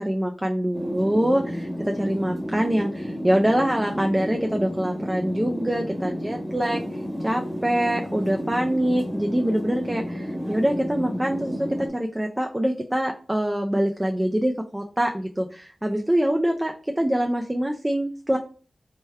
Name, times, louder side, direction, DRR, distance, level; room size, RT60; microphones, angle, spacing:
voice 1, 0.0-18.4, right 1 dB, 15° right, 2 dB, 0.4 m, -24 dB
sound 1, 0.7-11.9, equal, 20° left, 1.2 m, -31 dB
3.4 x 2.2 x 4.3 m, 0.42 s
wide cardioid pair, 60°, 0 cm